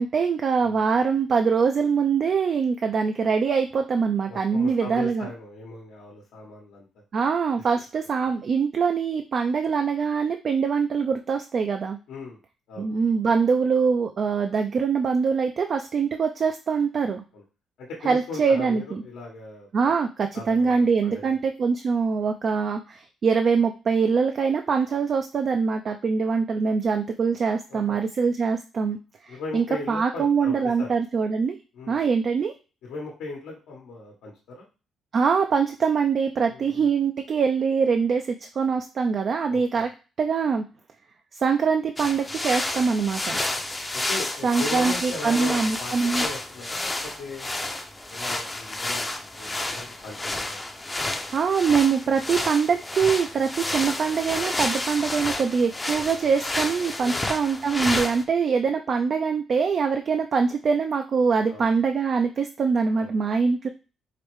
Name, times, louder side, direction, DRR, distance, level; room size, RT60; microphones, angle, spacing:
voice 1, 0.0-5.3 7.1-12.0 12.8-17.2 18.0-19.0 19.7-29.0 29.2-31.6 31.9-32.5 35.1-38.3 38.6-39.9 40.2-40.6 41.3-43.4 44.4-46.2 51.3-63.7, right 5 dB, 50° right, 5 dB, 0.4 m, -23 dB
voice 2, 4.3-6.9 12.1-12.4 12.7-12.9 17.3-17.4 17.8-19.9 20.3-21.3 27.7-28.0 29.3-30.9 31.7-32.0 32.8-34.7 36.5-36.9 39.5-39.9 43.3-43.6 43.9-45.9 46.2-46.9 47.2-47.5 48.1-50.6 57.0-57.3 61.5-61.7 62.9-63.3, left 2 dB, 85° left, -3 dB, 1.1 m, -38 dB
sound 1, 42.0-58.2, left 2 dB, 15° left, 0.5 m, -30 dB
4.8 x 2.1 x 3.0 m, 0.33 s
cardioid pair, 90°, 0 cm